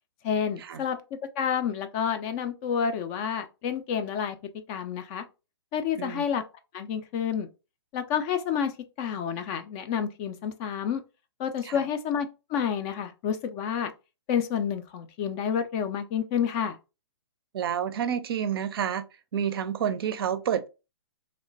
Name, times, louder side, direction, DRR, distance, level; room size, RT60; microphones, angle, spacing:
voice 1, 0.2-1.0 1.4-4.4 4.7-5.3 5.7-6.4 6.7-7.5 7.9-8.7 9.0-11.0 11.4-13.9 14.3-16.8, left 8 dB, 30° left, 0.3 m, -29 dB
voice 2, 17.5-19.0 19.3-20.7, right 8 dB, 60° right, 0.4 m, -29 dB
3.0 x 2.1 x 2.6 m
hypercardioid pair, 125°, 14 cm